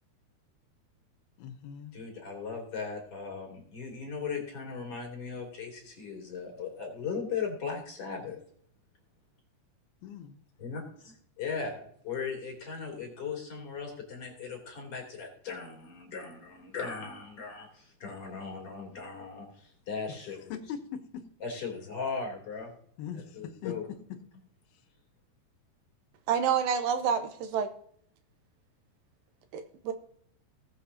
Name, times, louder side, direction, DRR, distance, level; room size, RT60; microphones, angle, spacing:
voice 1, 1.4-2.0 10.0-10.4 20.2-21.2 23.0-24.2, left 8 dB, 80° left, 8 dB, 2.8 m, -41 dB
voice 2, 1.9-8.4 10.6-20.6 21.4-22.7 23.1-23.9, left 5 dB, 40° left, 0 dB, 3.9 m, -38 dB
voice 3, 26.3-27.7 29.5-29.9, right 7 dB, 75° right, 8 dB, 2.4 m, -28 dB
19.5 x 7.7 x 2.8 m, 0.62 s
omnidirectional pair, 4.4 m